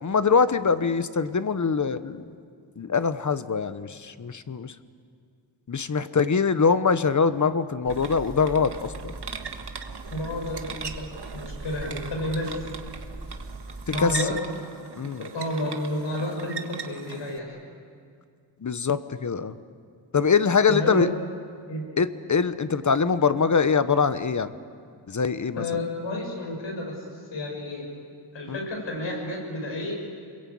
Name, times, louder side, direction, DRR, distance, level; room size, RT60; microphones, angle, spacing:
voice 1, 0.0-2.2 2.8-4.7 5.7-9.1 14.0-14.1 15.0-15.2 18.6-19.6 20.1-21.1 22.0-24.5 25.1-25.6 28.5-28.6, left 5 dB, 40° left, 12 dB, 1.1 m, -23 dB
Hammer, 7.8-14.2, right 2 dB, 25° right, 3.2 m, -41 dB
sound 1, 7.9-17.4, right 6 dB, 65° right, 1.6 m, -40 dB
voice 2, 10.1-12.6 13.9-14.3 15.2-17.6 20.7-21.1 21.7-21.8 25.6-27.9 28.3-29.9, left 1 dB, 85° left, 0 dB, 7.4 m, -31 dB
30.0 x 22.0 x 8.6 m, 2.2 s
wide cardioid pair, 100°, 43 cm